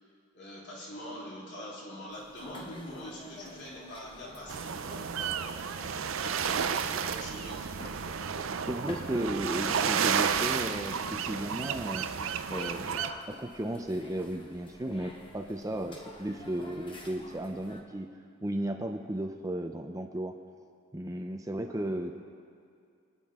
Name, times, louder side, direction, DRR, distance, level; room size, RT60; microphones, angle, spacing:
voice 1, 0.3-7.7 21.7-22.0, equal, 55° left, -5 dB, 3.5 m, -44 dB
sound 1, 2.1-17.8, left 1 dB, 25° left, 1.1 m, -49 dB
sound 2, 4.5-13.1, right 7 dB, 70° right, 0.6 m, -32 dB
voice 2, 8.7-12.1 12.5-13.0 13.3-18.1 18.4-20.3 20.9-22.1, right 1 dB, 15° right, 4 dB, 0.6 m, -34 dB
26.0 x 9.9 x 3.7 m, 2.3 s
head